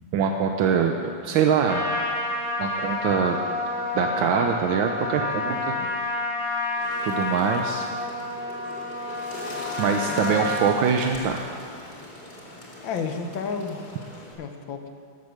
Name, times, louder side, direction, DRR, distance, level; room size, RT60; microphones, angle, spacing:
voice 1, 0.1-0.9 1.2-1.9 2.6-3.4 3.9-5.8 7.0-7.9 9.8-11.5, right 6 dB, 85° right, 4 dB, 1.5 m, -23 dB
Trumpet, 1.6-10.7, left 2 dB, 15° left, 3.1 m, -29 dB
Bird, 6.8-14.3, left 1 dB, 55° left, 3.1 m, -41 dB
voice 2, 10.1-10.7 12.8-14.0 14.4-14.9, left 5 dB, 80° left, 6 dB, 1.6 m, -32 dB
14.0 x 8.1 x 6.5 m, 2.3 s
omnidirectional pair, 2.1 m